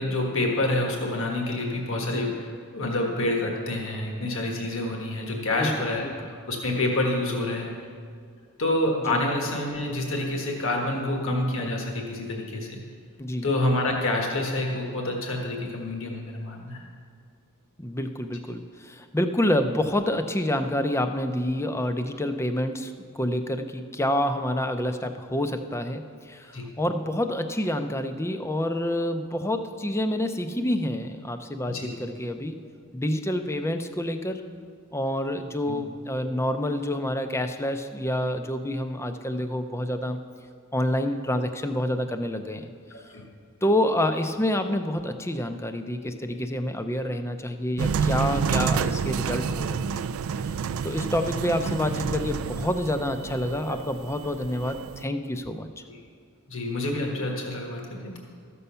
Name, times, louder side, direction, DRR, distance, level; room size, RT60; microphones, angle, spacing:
voice 1, 0.0-7.7 8.6-12.8 13.4-16.8 26.5-26.7 31.6-31.9 35.7-35.8 42.9-43.2 49.5-49.6 55.9-56.0 56.5-58.2, left 2 dB, 60° left, 0 dB, 1.5 m, -28 dB
voice 2, 2.0-2.3 5.6-5.7 6.0-6.2 9.0-9.2 13.2-13.5 17.8-32.6 32.9-34.4 34.9-40.2 40.7-42.7 43.6-50.0 50.4-55.7, left 1 dB, 10° left, 7 dB, 0.5 m, -28 dB
sound 1, 47.8-55.0, right 6 dB, 65° right, 0.3 m, -29 dB
13.5 x 6.9 x 5.5 m, 2.2 s
head